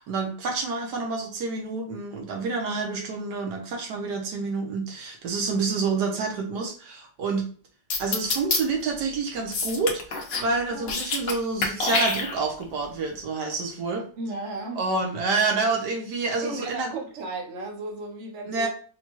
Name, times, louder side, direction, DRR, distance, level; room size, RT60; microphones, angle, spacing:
voice 1, 0.0-7.5 8.0-14.1 14.8-16.9 18.5-18.7, right 4 dB, 65° right, 1.3 m, -28 dB
sound 1, 7.9-8.6 9.5-10.5 10.8-11.3 11.6-12.6, left 4 dB, 60° left, 0.6 m, -26 dB
voice 2, 14.2-14.8 16.4-18.7, right 2 dB, 50° right, 0.9 m, -35 dB
4.3 x 2.2 x 3.0 m
omnidirectional pair, 2.0 m